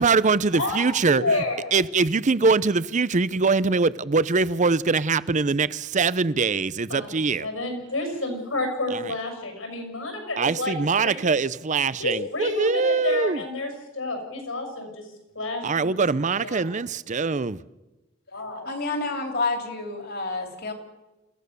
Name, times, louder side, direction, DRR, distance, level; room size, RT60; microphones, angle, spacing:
voice 1, 0.0-1.4 1.7-7.5 8.9-9.1 10.4-13.4 15.6-17.6, right 4 dB, 35° right, 0.6 m, -23 dB
voice 2, 0.5-1.7 6.9-7.1 7.4-10.7 11.0-11.2 12.0-15.0 15.3-16.0 16.4-16.6 18.3-18.7, left 2 dB, 75° left, 6.5 m, -30 dB
voice 3, 18.6-20.7, left 3 dB, 50° left, 3.4 m, -29 dB
27.5 x 16.0 x 6.8 m
head